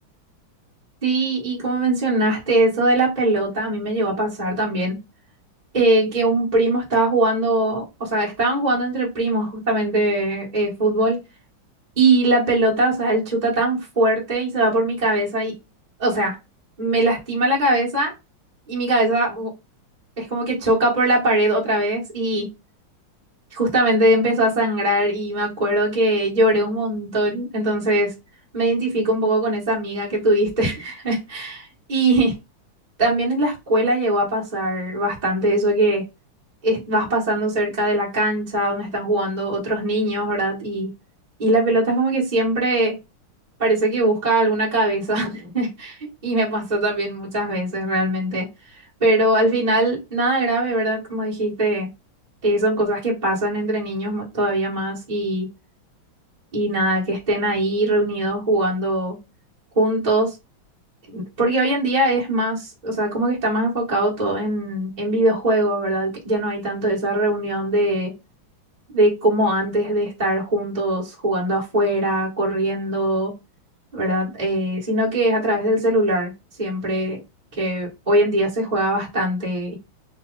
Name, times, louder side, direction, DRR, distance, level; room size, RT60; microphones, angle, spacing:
voice 1, 1.0-5.0 5.7-11.2 12.0-15.5 16.0-16.4 16.8-18.1 18.7-19.5 20.2-22.5 23.5-28.1 28.5-32.3 33.0-36.0 36.6-40.9 41.4-42.9 43.6-48.5 48.7-51.9 52.4-55.5 56.5-59.2 59.7-60.3 61.1-68.1 68.9-73.3 73.9-76.3 76.6-77.2 77.5-79.7, right 1 dB, 20° right, 1.4 m, -21 dB
4.2 x 2.8 x 3.9 m
omnidirectional pair, 2.3 m